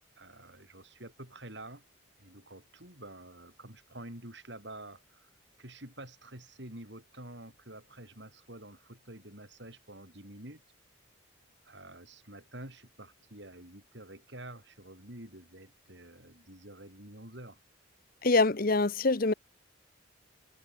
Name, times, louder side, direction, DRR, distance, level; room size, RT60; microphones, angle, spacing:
voice 1, 0.2-1.8 2.2-5.3 5.6-10.6 11.6-17.6, right 1 dB, 55° right, 7.3 m, -48 dB
voice 2, 18.2-19.3, left 3 dB, 45° left, 0.8 m, -25 dB
head